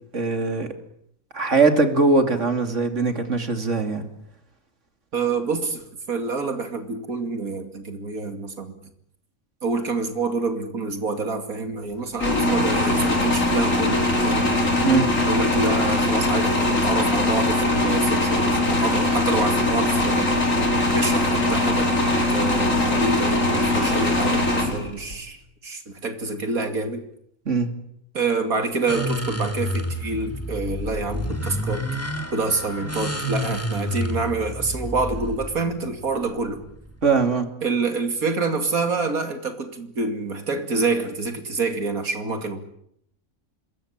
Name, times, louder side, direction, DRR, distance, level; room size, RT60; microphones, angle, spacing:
voice 1, 0.1-0.7 1.3-4.0 14.8-15.1 27.5-27.7 37.0-37.5, right 3 dB, 55° right, 7 dB, 3.1 m, -21 dB
voice 2, 5.1-8.7 9.6-14.5 15.3-20.3 20.9-21.9 22.3-27.0 28.1-31.9 32.3-36.7 37.6-42.6, right 3 dB, 80° right, 7 dB, 3.0 m, -27 dB
sound 1, 12.2-25.2, left 1 dB, 65° left, 4.7 m, -21 dB
sound 2, 28.9-37.2, equal, 10° left, 2.2 m, -29 dB
27.0 x 21.0 x 8.9 m, 0.72 s
omnidirectional pair, 1.5 m